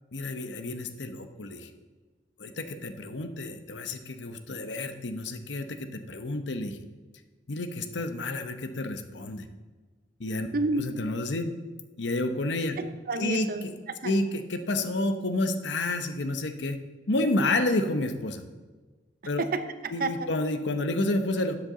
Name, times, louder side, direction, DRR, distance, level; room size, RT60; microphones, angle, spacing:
voice 1, 0.1-1.7 2.4-6.8 7.5-9.5 10.2-10.5 10.8-11.5 12.0-12.8 13.2-13.5 14.0-16.8 17.1-18.4 19.3-19.4 19.9-21.6, left 2 dB, 75° left, 8 dB, 0.9 m, -30 dB
voice 2, 10.5-10.9 12.8-14.1 19.4-20.3, right 3 dB, 55° right, 10 dB, 0.7 m, -30 dB
12.5 x 8.0 x 3.8 m, 1.3 s
head